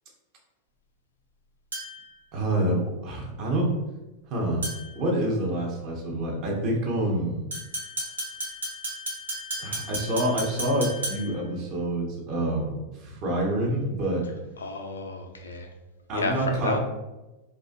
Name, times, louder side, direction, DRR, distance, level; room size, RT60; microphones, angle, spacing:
sound 1, 1.7-2.2 4.6-5.0 7.5-11.5, right 1 dB, 75° right, 0.7 m, -34 dB
voice 1, 2.3-3.7 4.3-4.7 5.0-7.4 9.6-14.2 16.1-16.7, right 1 dB, 40° right, -2 dB, 0.7 m, -27 dB
voice 2, 14.6-15.7 16.1-16.8, left 3 dB, 70° left, 3 dB, 0.3 m, -31 dB
2.4 x 2.3 x 2.4 m, 1.1 s
figure-of-eight pair, 90°, 0 cm